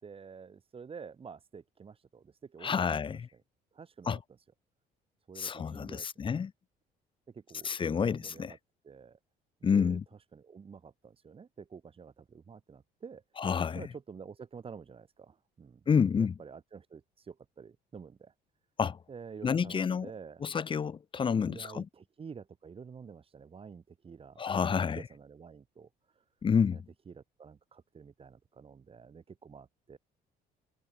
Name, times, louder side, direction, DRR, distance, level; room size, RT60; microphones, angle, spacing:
voice 1, 0.0-3.0 3.7-4.2 5.3-6.4 7.3-8.6 8.8-9.2 9.6-10.0 10.3-13.2 13.7-15.8 16.2-18.3 19.1-20.4 21.4-25.9 26.7-26.8 27.1-30.0, right 6 dB, 35° right, 4.7 m, -49 dB
voice 2, 2.6-3.2 4.1-4.2 5.4-6.5 7.6-8.5 9.6-10.0 13.4-13.9 15.9-16.3 18.8-19.0 19.4-20.1 20.4-21.9 24.4-25.0 26.4-26.8, left 6 dB, 30° left, 0.8 m, -29 dB
cardioid pair, 110°, 17 cm